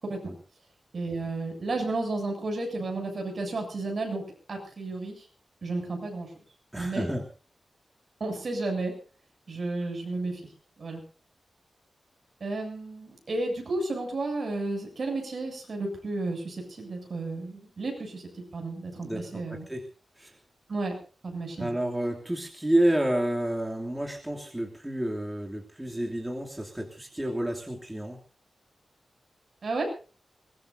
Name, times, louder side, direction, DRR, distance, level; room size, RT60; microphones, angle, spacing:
voice 1, 0.9-4.2 4.5-5.3 5.6-6.3 6.8-7.0 8.2-8.9 9.5-10.4 10.8-11.0 12.4-18.2 18.5-19.7 20.7-20.9 21.2-21.7 29.6-29.9, right 2 dB, 50° right, 3 dB, 7.6 m, -32 dB
voice 2, 6.7-7.2 19.0-19.8 20.2-20.4 21.6-28.2, right 1 dB, 10° right, 0 dB, 2.9 m, -29 dB
23.0 x 21.0 x 2.7 m, 0.37 s
wide cardioid pair, 135°, 0 cm